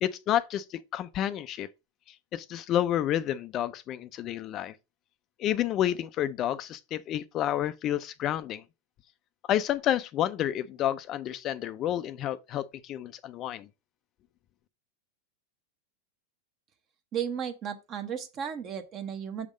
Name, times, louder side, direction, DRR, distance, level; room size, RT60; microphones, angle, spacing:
voice 1, 0.0-1.7 2.3-4.7 5.4-8.6 9.5-13.7, left 11 dB, 35° left, 0.4 m, -30 dB
voice 2, 17.1-19.5, right 8 dB, 35° right, 0.9 m, -34 dB
6.4 x 3.6 x 4.9 m
supercardioid pair, 140°, 0 cm